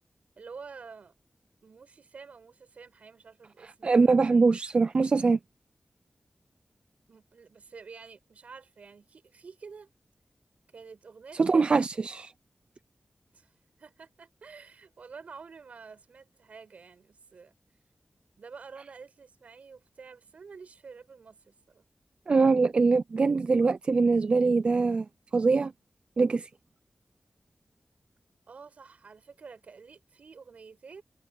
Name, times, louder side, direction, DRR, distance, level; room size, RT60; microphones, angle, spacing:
voice 1, 0.4-1.1 1.6-4.5 7.1-9.9 10.7-11.8 13.3-13.5 13.8-17.5 18.4-21.9 28.5-31.0, right 5 dB, 80° right, 5.9 m, -49 dB
voice 2, 3.8-5.4 11.4-12.3 22.3-25.1 25.3-25.7 26.2-26.5, right 4 dB, 50° right, 0.5 m, -23 dB
wide cardioid pair, 115°, 2 cm